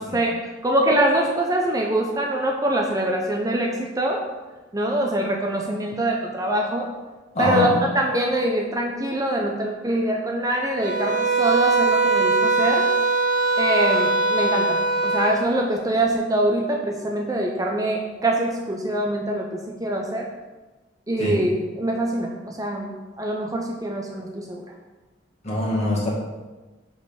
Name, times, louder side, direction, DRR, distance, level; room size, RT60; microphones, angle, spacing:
voice 1, 0.0-4.2 4.7-6.9 7.4-7.7 8.0-12.8 13.6-20.3 21.1-21.5 21.8-24.6, right 1 dB, 20° right, 1 dB, 0.7 m, -24 dB
voice 2, 7.3-7.8 21.2-21.5 25.4-26.1, left 1 dB, 35° left, -5 dB, 2.2 m, -24 dB
sound 1, 10.8-15.4, right 3 dB, 80° right, 1.3 m, -21 dB
5.4 x 5.1 x 6.3 m, 1.2 s
head